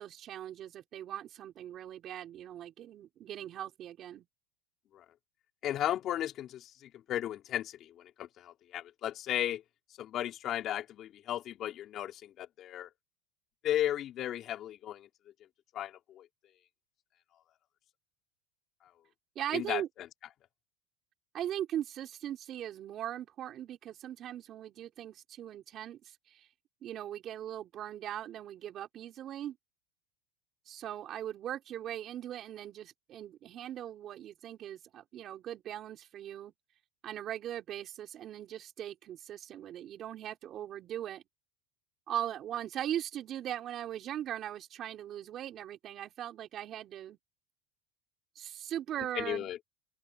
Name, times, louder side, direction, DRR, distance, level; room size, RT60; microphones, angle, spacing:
voice 1, 0.0-4.2 19.3-19.9 21.3-26.5 26.8-29.6 30.7-36.5 37.0-41.2 42.1-47.2 48.3-49.5, right 11 dB, 40° right, 4.3 m, -39 dB
voice 2, 5.6-7.9 8.2-9.6 10.0-12.9 13.6-15.1 15.7-16.3 19.5-19.8 49.1-49.6, left 12 dB, 40° left, 4.5 m, -35 dB
open air
supercardioid pair, 140°, 0 cm